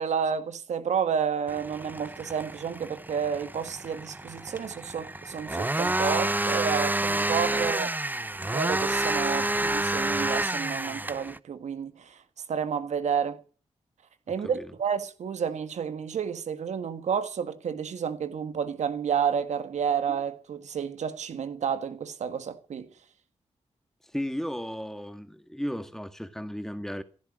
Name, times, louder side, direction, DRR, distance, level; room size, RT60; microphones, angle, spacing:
voice 1, 0.0-8.0 8.5-12.2 12.5-13.4 14.3-22.9, right 7 dB, 80° right, 1.6 m, -30 dB
sound 1, 1.5-11.4, right 2 dB, 15° right, 0.8 m, -29 dB
voice 2, 24.1-27.0, equal, 5° left, 2.1 m, -34 dB
16.0 x 11.0 x 6.3 m
cardioid pair, 50°, 12 cm